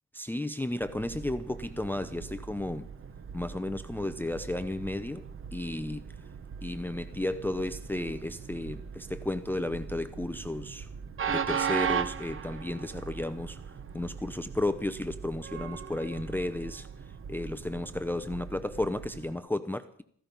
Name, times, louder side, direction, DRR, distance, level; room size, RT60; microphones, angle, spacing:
voice 1, 0.1-2.8 3.3-5.2 5.5-6.0 6.6-10.9 11.3-16.9 17.3-20.0, left 1 dB, 5° left, 11 dB, 0.7 m, -33 dB
Train, 0.8-19.3, right 7 dB, 45° right, 0.9 m, -38 dB
16.5 x 15.5 x 5.3 m, 0.62 s
wide cardioid pair, 130°, 29 cm